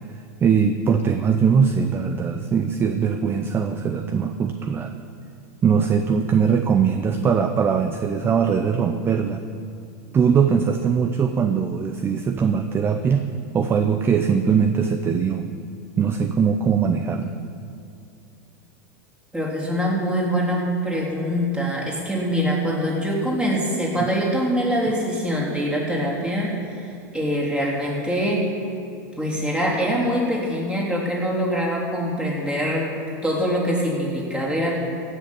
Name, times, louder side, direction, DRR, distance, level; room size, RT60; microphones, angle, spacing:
voice 1, 0.4-4.9 5.6-9.4 10.1-13.3 13.5-15.5 16.0-17.3 24.0-24.1, right 6 dB, 25° right, 7 dB, 0.7 m, -21 dB
voice 2, 19.3-26.9 27.1-28.4 29.2-32.9 33.2-34.7, equal, 10° right, -3 dB, 3.5 m, -24 dB
16.0 x 6.6 x 8.5 m, 2.5 s
supercardioid pair, 120°, 9 cm